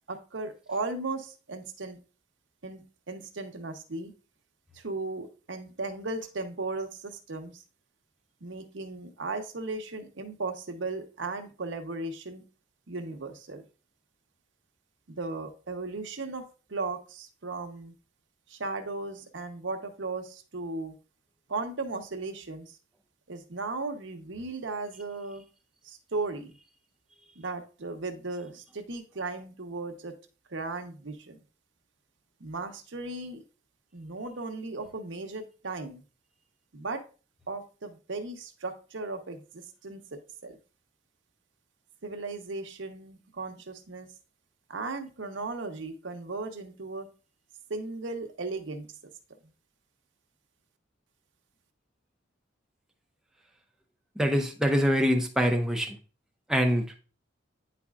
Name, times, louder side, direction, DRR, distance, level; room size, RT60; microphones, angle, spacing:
voice 1, 0.1-2.0 2.6-2.8 3.1-4.1 4.8-7.5 8.4-12.4 12.9-13.6 15.2-16.4 16.7-17.9 18.6-20.2 20.5-20.9 21.5-22.6 23.3-25.4 26.1-26.5 27.4-30.1 30.5-31.1 32.4-33.4 33.9-36.0 36.7-37.0 37.5-39.4 39.8-40.0 40.4-40.5 42.0-44.1 44.7-47.1 47.7-48.9, right 3 dB, 75° right, 5 dB, 0.9 m, -36 dB
voice 2, 54.2-56.0 56.5-57.0, equal, 5° right, 2 dB, 0.7 m, -24 dB
9.8 x 4.2 x 2.4 m, 0.36 s
head